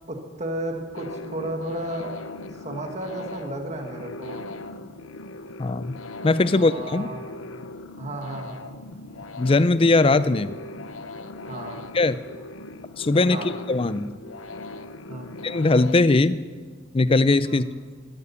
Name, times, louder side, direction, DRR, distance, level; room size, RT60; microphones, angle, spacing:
voice 1, 0.1-2.1 2.6-4.5 6.5-7.2 8.0-8.8 11.4-11.8 13.3-13.5 15.1-15.3 17.4-17.7, right 1 dB, 35° right, 3 dB, 1.6 m, -33 dB
sound 1, 0.9-15.9, left 2 dB, 90° left, 0.7 m, -39 dB
voice 2, 5.6-6.0 6.2-7.1 9.4-10.5 11.9-12.2 13.0-14.1 15.4-16.4 16.9-17.7, left 2 dB, 30° left, 15 dB, 0.4 m, -20 dB
13.5 x 13.0 x 7.0 m, 1.5 s
head